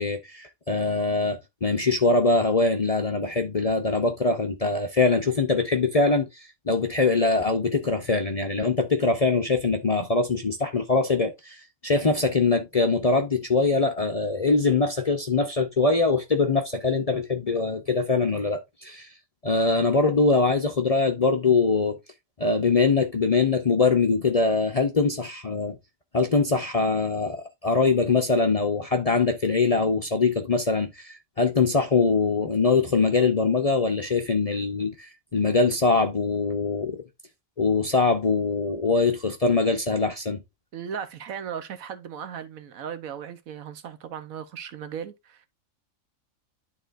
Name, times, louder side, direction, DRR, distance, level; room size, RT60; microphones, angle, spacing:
voice 1, 0.0-19.1 19.4-22.0 22.4-25.8 26.1-37.0 37.6-40.4, left 3 dB, 40° left, 0.6 m, -23 dB
voice 2, 40.7-45.5, right 8 dB, 80° right, 1.3 m, -37 dB
11.5 x 3.8 x 2.5 m
omnidirectional pair, 1.4 m